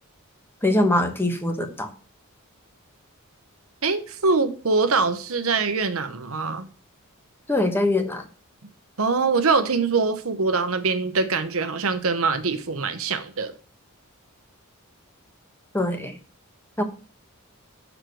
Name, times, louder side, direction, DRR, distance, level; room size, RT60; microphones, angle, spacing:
voice 1, 0.6-1.9 7.5-8.2 15.7-16.2 16.8-16.9, left 1 dB, 10° left, 1.1 m, -22 dB
voice 2, 3.8-6.7 9.0-13.5, right 4 dB, 70° right, 0.9 m, -23 dB
6.5 x 4.6 x 6.3 m
head